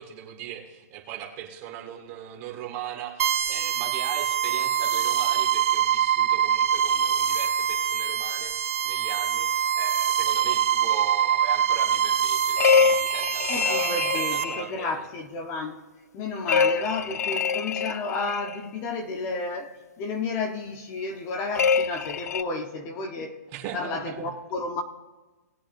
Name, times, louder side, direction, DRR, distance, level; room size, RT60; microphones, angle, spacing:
voice 1, 0.0-15.0 23.5-24.2, right 10 dB, 30° right, 2.0 m, -39 dB
sound 1, 3.2-14.4, right 9 dB, 55° right, 3.5 m, -24 dB
sound 2, 12.6-14.9 16.5-18.6 21.5-22.4, left 6 dB, 70° left, 0.5 m, -24 dB
voice 2, 13.5-15.8 16.1-23.4 23.7-24.8, left 3 dB, 25° left, 1.2 m, -32 dB
19.5 x 8.4 x 2.7 m
hypercardioid pair, 145°, 9 cm